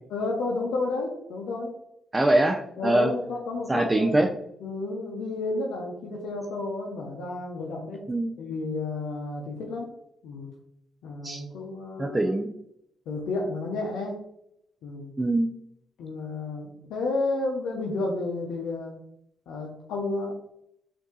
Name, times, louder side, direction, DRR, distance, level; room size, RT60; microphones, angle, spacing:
voice 1, 0.1-1.7 2.8-4.2 4.6-8.1 8.4-9.9 10.2-10.5 11.0-12.2 13.1-14.2 14.8-15.1 16.0-18.9 19.5-20.3, left 3 dB, 75° left, -1 dB, 0.6 m, -31 dB
voice 2, 2.1-3.1 3.7-4.3 8.1-8.3 11.2-11.4 12.0-12.5 15.2-15.5, right 1 dB, 20° right, 3 dB, 0.4 m, -23 dB
3.5 x 2.7 x 3.9 m, 0.76 s
supercardioid pair, 50°, 0 cm